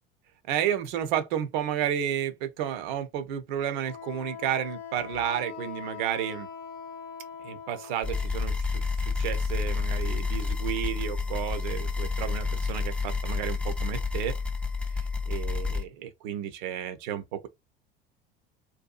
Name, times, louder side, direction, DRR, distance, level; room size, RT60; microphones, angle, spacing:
voice 1, 0.5-6.5 7.4-14.4 14.9-17.5, right 10 dB, 55° right, 0.5 m, -32 dB
Wind instrument woodwind instrument, 3.8-8.3, left 7 dB, 55° left, 0.6 m, -42 dB
sound 1, 8.0-15.8, left 4 dB, 5° left, 0.3 m, -29 dB
2.7 x 2.2 x 2.3 m
figure-of-eight pair, 70°, 29 cm